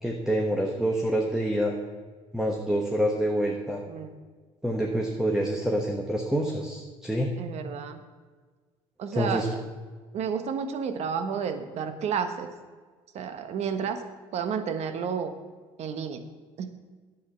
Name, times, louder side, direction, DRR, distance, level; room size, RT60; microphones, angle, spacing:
voice 1, 0.0-1.7 2.3-3.8 4.6-7.3 9.1-9.5, right 1 dB, 5° right, 0 dB, 1.3 m, -27 dB
voice 2, 7.4-8.0 9.0-9.4 10.1-12.5 13.1-14.0 14.3-15.3 15.8-16.2 16.6-16.7, right 6 dB, 60° right, 9 dB, 1.2 m, -31 dB
10.0 x 8.4 x 5.7 m, 1.4 s
supercardioid pair, 80°, 13 cm